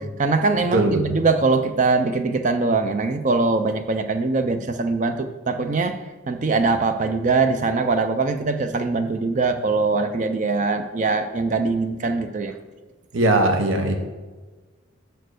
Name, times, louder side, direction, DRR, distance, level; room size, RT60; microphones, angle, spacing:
voice 1, 0.0-6.0 6.3-12.6, right 3 dB, 40° right, 9 dB, 0.4 m, -22 dB
voice 2, 0.7-1.0 13.1-13.9, right 1 dB, 80° right, 6 dB, 0.9 m, -19 dB
6.3 x 4.5 x 6.3 m, 1.3 s
head